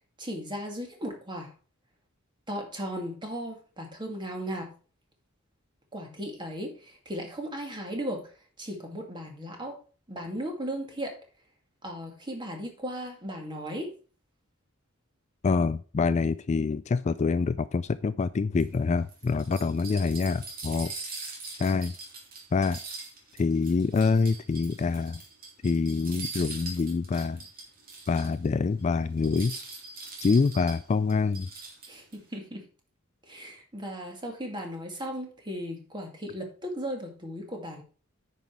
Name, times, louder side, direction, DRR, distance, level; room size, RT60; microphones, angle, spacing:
voice 1, 0.2-1.5 2.5-4.7 5.9-8.3 8.6-9.8 10.1-11.2 11.8-13.9 31.9-32.7 33.2-37.8, equal, 20° right, 2.2 m, -36 dB
voice 2, 15.4-20.9 21.6-21.9 22.5-22.8 23.4-25.2 25.6-27.4 28.1-29.5 30.2-31.5, left 4 dB, 35° left, 0.3 m, -26 dB
sound 1, 18.6-28.5 28.8-28.9 29.2-32.2, right 3 dB, 45° right, 2.7 m, -42 dB
9.4 x 5.6 x 4.6 m
head